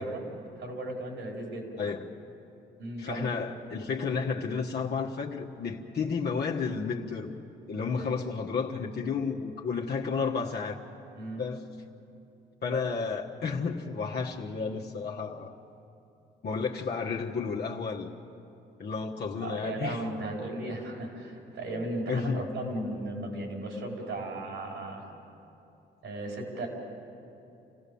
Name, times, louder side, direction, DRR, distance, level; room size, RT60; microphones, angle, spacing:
voice 1, 0.0-1.7 2.8-3.3 7.9-8.2 11.1-11.4 19.4-25.1 26.0-26.7, right 1 dB, 75° right, 0 dB, 4.9 m, -36 dB
voice 2, 3.0-7.4 7.7-10.8 11.4-11.7 12.6-15.5 16.4-18.1 18.8-20.0 22.1-22.8, left 5 dB, 55° left, -2 dB, 1.5 m, -32 dB
28.0 x 16.5 x 7.1 m, 2.9 s
cardioid pair, 90°, 20 cm